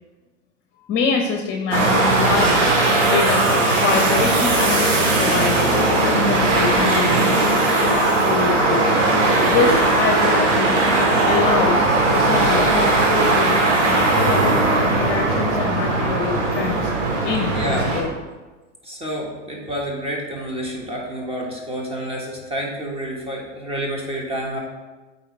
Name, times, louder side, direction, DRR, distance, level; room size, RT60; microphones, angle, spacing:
voice 1, 0.9-2.6 3.0-9.0 9.5-10.9 11.3-11.8 12.1-13.6 13.8-16.9 17.2-18.1, left 5 dB, 30° left, 2 dB, 0.8 m, -25 dB
sound 1, 1.7-18.0, right 2 dB, 75° right, 1.9 m, -18 dB
voice 2, 17.5-17.9 18.8-24.6, equal, 15° right, -2 dB, 1.4 m, -29 dB
8.7 x 4.1 x 3.3 m, 1.2 s
hypercardioid pair, 105°, 37 cm